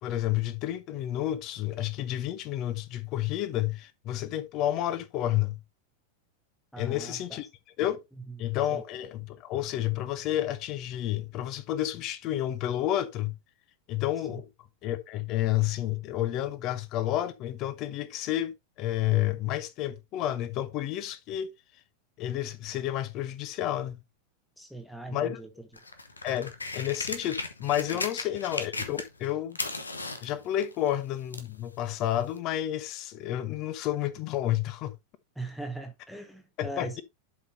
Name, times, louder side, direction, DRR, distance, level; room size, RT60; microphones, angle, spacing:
voice 1, 0.0-5.6 6.8-7.5 7.8-8.0 8.4-13.3 13.9-14.5 14.8-18.5 18.8-21.5 22.2-24.0 25.1-25.4 26.2-29.6 30.2-34.9 36.6-37.0, left 13 dB, 40° left, 1.0 m, -30 dB
voice 2, 6.7-7.4 8.7-8.8 14.3-14.4 24.6-25.5 27.9-28.0 35.4-37.0, right 2 dB, ahead, 0.9 m, -40 dB
sound 1, 25.7-29.3 29.5-31.6 32.4-32.5, left 3 dB, 80° left, 1.3 m, -36 dB
11.5 x 5.4 x 2.8 m
figure-of-eight pair, 90°, 0 cm